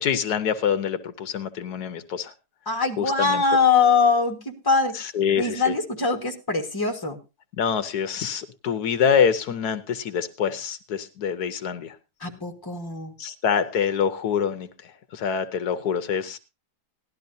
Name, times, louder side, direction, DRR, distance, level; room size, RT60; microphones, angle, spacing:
voice 1, 0.0-2.3 3.0-3.4 4.9-5.7 7.6-12.0 13.2-16.4, left 7 dB, 75° left, 12 dB, 1.4 m, -25 dB
voice 2, 2.7-4.9 5.4-7.2 12.2-13.1, left 5 dB, 15° left, 4 dB, 1.5 m, -22 dB
17.5 x 12.0 x 2.7 m, 0.27 s
omnidirectional pair, 1.7 m